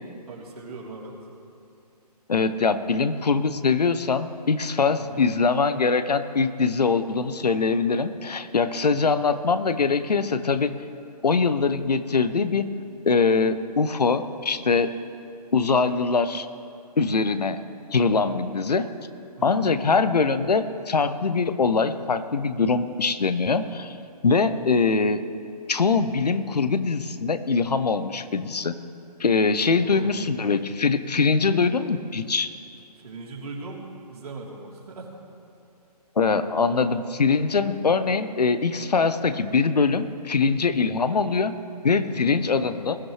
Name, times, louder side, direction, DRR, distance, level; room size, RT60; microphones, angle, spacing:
voice 1, 0.3-1.1 5.0-5.2 5.7-5.8 19.4-19.8 29.8-30.3 33.0-35.1 36.7-36.9 40.5-40.7 42.1-42.4, right 3 dB, 65° right, -3 dB, 3.4 m, -40 dB
voice 2, 2.3-10.8 11.2-12.7 13.0-15.0 15.5-16.5 17.0-17.6 17.9-18.9 19.4-24.0 24.2-25.2 25.7-28.8 29.2-32.5 36.2-41.5 41.8-43.0, left 4 dB, 75° left, 12 dB, 0.9 m, -23 dB
21.0 x 13.0 x 3.3 m, 2.6 s
figure-of-eight pair, 140°, 21 cm